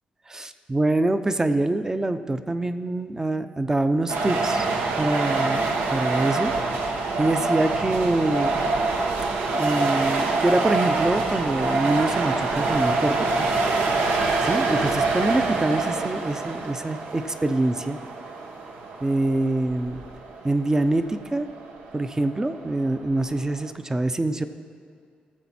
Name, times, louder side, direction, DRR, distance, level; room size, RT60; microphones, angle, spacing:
voice 1, 0.3-4.7 5.0-6.5 7.2-8.6 9.5-13.1 14.4-18.0 19.0-20.0 20.4-21.5 21.9-24.4, right 2 dB, 20° right, 10 dB, 0.6 m, -25 dB
sound 1, 4.1-23.7, right 3 dB, 90° right, 1.1 m, -26 dB
19.0 x 7.1 x 4.3 m, 2.1 s
cardioid pair, 95°, 3 cm